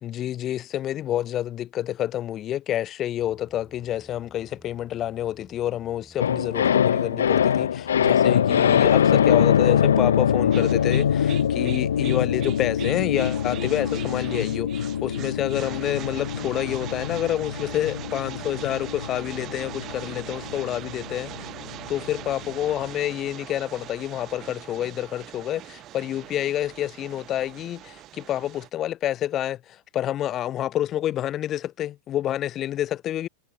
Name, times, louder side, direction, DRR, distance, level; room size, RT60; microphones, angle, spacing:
voice 1, 0.0-21.3 21.9-33.3, left 12 dB, 30° left, 3.0 m, -28 dB
sound 1, 3.2-9.1, right 1 dB, 5° right, 7.4 m, -54 dB
sound 2, 6.2-22.5 22.8-22.9, left 8 dB, 65° left, 0.3 m, -23 dB
sound 3, 10.5-28.7, right 14 dB, 35° right, 6.8 m, -41 dB
figure-of-eight pair, 90°, 0 cm